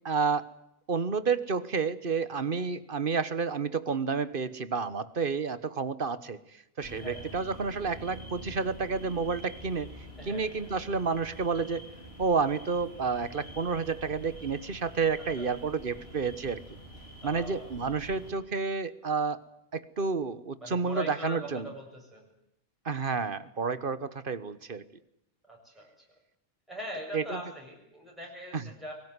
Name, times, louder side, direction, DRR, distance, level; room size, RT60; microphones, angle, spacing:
voice 1, 0.0-0.5 0.9-6.4 6.8-9.9 10.2-11.8 12.2-16.6 17.2-19.4 19.7-21.7 22.8-24.8 27.1-27.4 28.5-28.7, right 5 dB, 45° right, 14 dB, 1.4 m, -30 dB
sound 1, 6.8-18.3, equal, 50° left, 4.8 m, -47 dB
voice 2, 10.2-10.7 15.4-15.7 17.2-17.7 18.1-18.5 20.6-22.3 25.4-25.9 26.7-28.9, equal, ahead, -3 dB, 7.3 m, -42 dB
23.0 x 19.0 x 9.7 m, 0.80 s
omnidirectional pair, 1.4 m